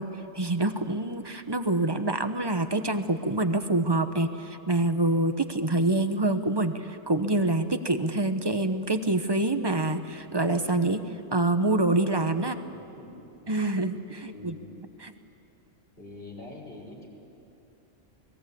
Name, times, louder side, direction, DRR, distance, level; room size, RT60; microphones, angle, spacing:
voice 1, 0.0-12.5 13.5-14.6 15.0-15.1, right 2 dB, 20° right, 9 dB, 0.9 m, -26 dB
voice 2, 12.5-13.5 14.3-14.7 16.0-17.1, left 2 dB, 45° left, -2 dB, 5.0 m, -45 dB
29.5 x 20.5 x 8.5 m, 2.8 s
omnidirectional pair, 1.3 m